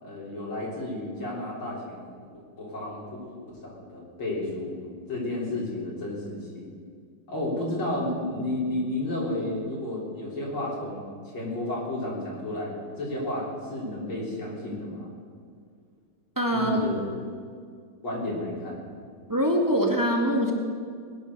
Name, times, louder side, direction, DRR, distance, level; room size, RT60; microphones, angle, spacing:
voice 1, 0.0-2.0 2.3-6.7 7.3-15.1 16.5-17.1 18.0-18.8, left 1 dB, 65° left, -5 dB, 4.6 m, -32 dB
voice 2, 16.4-16.8 19.3-20.5, equal, 10° right, 0 dB, 2.0 m, -23 dB
20.5 x 10.5 x 6.8 m, 2.1 s
omnidirectional pair, 2.4 m